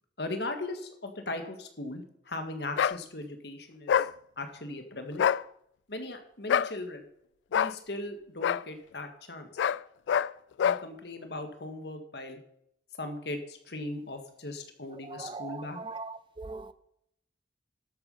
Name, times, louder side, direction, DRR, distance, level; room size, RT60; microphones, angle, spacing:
voice 1, 0.2-4.1 4.4-5.2 5.9-7.1 7.5-9.5 10.6-12.4 13.0-15.8, left 2 dB, 65° left, 6 dB, 1.8 m, -38 dB
sound 1, 2.8-3.0 3.9-4.1 5.1-5.4 6.5-6.7 7.5-7.7 8.4-8.6 9.6-9.8 10.1-10.3 10.6-10.8, left 8 dB, 85° left, 0.3 m, -25 dB
voice 2, 15.1-16.7, right 3 dB, 25° right, 14 dB, 0.5 m, -40 dB
12.5 x 8.3 x 5.5 m, 0.75 s
head